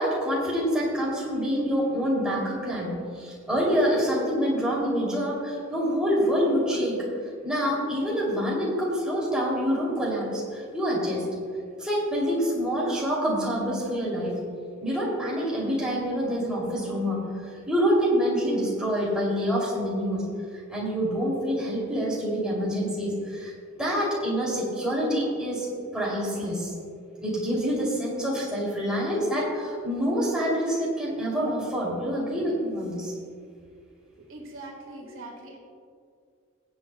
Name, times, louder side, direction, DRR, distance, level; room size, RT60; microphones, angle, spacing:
voice 1, 0.0-7.0 7.4-11.2 11.8-14.4 14.8-17.2 17.7-20.2 20.7-23.5 23.8-25.7 25.9-26.7 27.2-33.1, equal, 5° right, -6 dB, 3.0 m, -26 dB
voice 2, 34.2-35.6, right 2 dB, 75° right, -1 dB, 1.8 m, -42 dB
23.0 x 8.5 x 2.3 m, 2.3 s
head